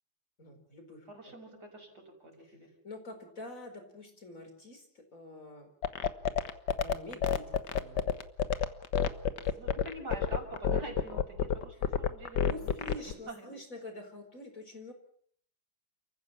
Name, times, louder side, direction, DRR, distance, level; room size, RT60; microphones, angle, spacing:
voice 1, 0.4-1.1 2.5-2.6 2.8-5.7 6.8-7.4 7.7-8.2 9.4-9.6 12.4-14.9, left 1 dB, 40° left, 5 dB, 5.0 m, -46 dB
voice 2, 1.1-2.7 9.6-13.5, right 1 dB, 55° right, 2 dB, 6.2 m, -46 dB
sound 1, 5.8-13.1, left 7 dB, 65° left, 1.6 m, -28 dB
29.5 x 15.0 x 7.3 m, 0.62 s
omnidirectional pair, 2.1 m